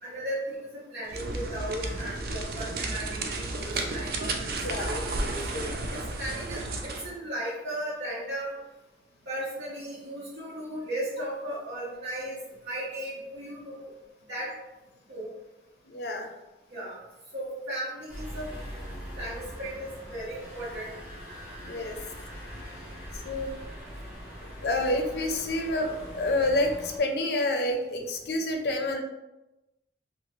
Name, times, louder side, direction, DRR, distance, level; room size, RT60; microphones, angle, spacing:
voice 1, 0.0-8.6 9.3-12.4 12.6-13.9 14.3-14.5 15.1-15.3 16.7-17.0 17.3-18.5 19.2-20.9, right 1 dB, 85° right, -8 dB, 0.8 m, -36 dB
sound 1, 1.1-7.1, right 2 dB, 55° right, 0.4 m, -33 dB
voice 2, 4.6-5.0 15.9-16.3 21.6-22.0 23.1-23.5 24.6-29.0, left 1 dB, 70° left, 3 dB, 0.5 m, -28 dB
sound 2, 18.1-27.0, equal, 10° right, 0.8 m, -42 dB
2.8 x 2.7 x 3.0 m, 1.0 s
head